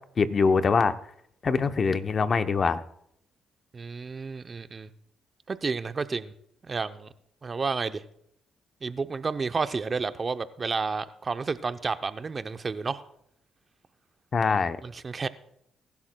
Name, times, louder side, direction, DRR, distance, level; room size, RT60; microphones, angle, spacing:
voice 1, 0.2-0.9 1.4-2.8 14.3-14.8, left 5 dB, 40° left, 10 dB, 0.7 m, -23 dB
voice 2, 3.7-4.9 5.5-6.3 6.7-7.1 7.4-8.0 8.8-13.0 14.8-15.3, right 4 dB, 35° right, 11 dB, 0.6 m, -31 dB
22.0 x 11.5 x 2.2 m, 0.73 s
cardioid pair, 90°, 0 cm